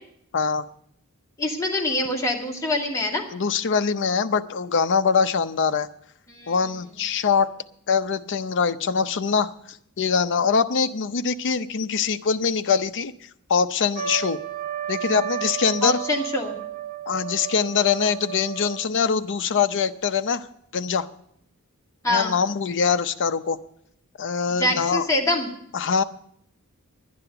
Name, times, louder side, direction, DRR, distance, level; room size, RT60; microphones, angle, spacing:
voice 1, 0.3-0.7 3.3-5.9 6.5-7.5 7.9-9.5 10.0-13.1 13.5-14.4 14.9-16.0 17.1-20.5 20.7-21.1 22.1-23.6 24.2-25.1 25.7-26.0, left 6 dB, 55° left, 11 dB, 0.6 m, -23 dB
voice 2, 1.4-3.2 6.3-6.6 15.8-16.6 22.0-22.3 24.5-25.5, left 1 dB, 15° left, -2 dB, 2.2 m, -25 dB
Trumpet, 13.9-19.0, right 9 dB, 45° right, 1.7 m, -33 dB
12.0 x 9.7 x 6.8 m, 0.71 s
head